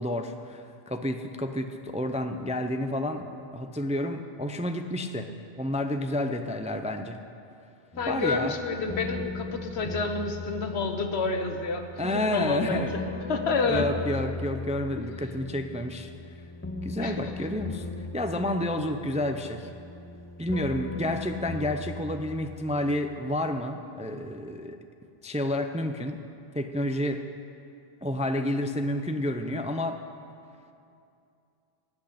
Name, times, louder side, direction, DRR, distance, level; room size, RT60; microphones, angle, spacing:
voice 1, 0.0-5.3 5.6-7.2 8.1-8.5 12.0-13.0 13.7-16.1 16.8-19.7 20.4-24.8 25.2-26.2 26.5-27.2 28.0-30.0, left 1 dB, 10° right, 7 dB, 0.3 m, -30 dB
sound 1, 7.9-23.4, left 3 dB, 15° left, 0.8 m, -39 dB
voice 2, 8.0-13.0 13.3-13.9 17.0-17.3, left 4 dB, 85° left, 5 dB, 1.3 m, -29 dB
16.5 x 6.2 x 10.0 m, 2.5 s
omnidirectional pair, 1.1 m